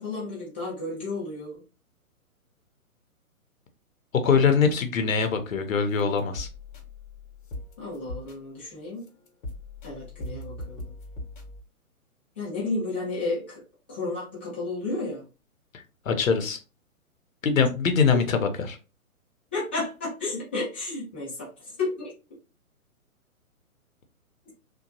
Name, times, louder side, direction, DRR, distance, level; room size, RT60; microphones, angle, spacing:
voice 1, 0.0-1.6 7.8-9.1 9.8-10.9 12.4-13.6 13.9-15.2 19.5-22.1, left 3 dB, 10° left, -8 dB, 0.4 m, -32 dB
voice 2, 4.1-6.5 16.1-16.6 17.4-18.8, left 5 dB, 65° left, 8 dB, 0.7 m, -23 dB
sound 1, 5.2-5.4 5.9-8.7 9.0-11.6, left 1 dB, 35° left, 0.9 m, -40 dB
2.8 x 2.2 x 2.7 m, 0.32 s
figure-of-eight pair, 125°, 43 cm